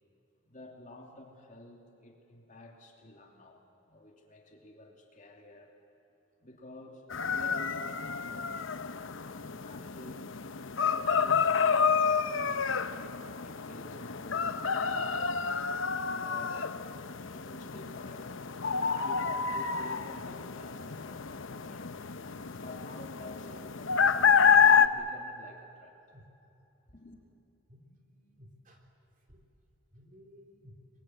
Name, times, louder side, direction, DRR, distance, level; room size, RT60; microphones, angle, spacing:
voice 1, 0.4-3.6 3.9-5.7 6.4-10.2 10.8-15.4 16.1-16.6 17.3-22.0 22.5-25.9 26.9-27.2, left 1 dB, 35° left, 2 dB, 2.8 m, -51 dB
sound 1, 7.1-24.9, left 6 dB, 65° left, 0.8 m, -29 dB
voice 2, 27.7-28.8 29.3-29.4 29.9-30.8, equal, 40° right, 2 dB, 3.2 m, -56 dB
28.0 x 22.5 x 8.0 m, 2.9 s
head